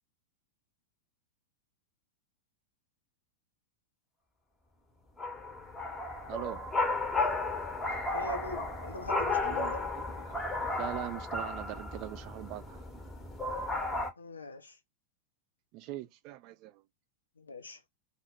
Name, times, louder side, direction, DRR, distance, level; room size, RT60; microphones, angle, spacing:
sound 1, 5.2-14.1, left 2 dB, 10° left, 0.7 m, -34 dB
voice 1, 6.3-6.6 7.8-8.3 9.4-12.9 15.7-16.8, right 16 dB, 40° right, 0.3 m, -42 dB
voice 2, 8.1-9.8 14.2-14.7 17.4-17.8, left 3 dB, 75° left, 0.5 m, -42 dB
2.1 x 2.0 x 3.5 m
figure-of-eight pair, 90°, 0 cm